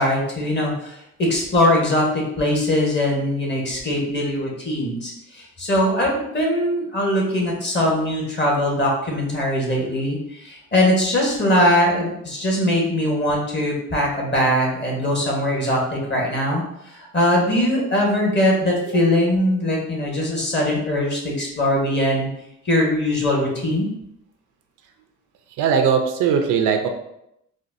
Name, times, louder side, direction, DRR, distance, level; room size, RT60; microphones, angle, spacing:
voice 1, 0.0-22.3 22.6-23.9, left 1 dB, 35° left, -2 dB, 1.2 m, -21 dB
voice 2, 25.6-26.9, right 7 dB, 80° right, 5 dB, 0.5 m, -19 dB
4.2 x 2.2 x 2.6 m, 0.79 s
cardioid pair, 90°, 30 cm